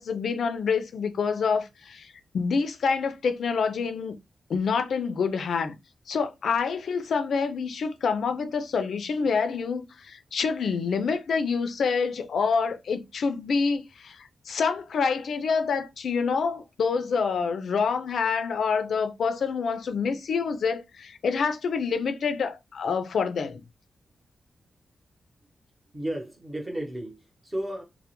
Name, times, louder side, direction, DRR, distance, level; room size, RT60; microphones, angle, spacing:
voice 1, 0.0-4.2 4.5-5.8 6.1-23.6, left 5 dB, 80° left, 0.4 m, -27 dB
voice 2, 25.9-27.8, right 1 dB, 20° right, 0.9 m, -33 dB
2.1 x 2.0 x 2.9 m
cardioid pair, 75°, 0 cm